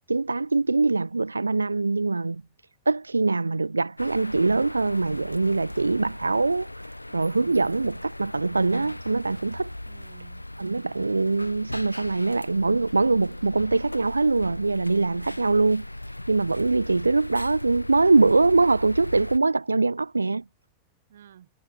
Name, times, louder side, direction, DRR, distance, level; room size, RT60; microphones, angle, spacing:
voice 1, 0.0-2.4 2.9-9.7 10.6-20.4, right 3 dB, 80° right, 0.5 m, -23 dB
sound 1, 4.0-19.4, left 1 dB, 85° left, 2.9 m, -38 dB
voice 2, 7.1-7.9 9.9-10.4 21.1-21.5, right 10 dB, 65° right, 6.6 m, -51 dB
figure-of-eight pair, 90°, 0 cm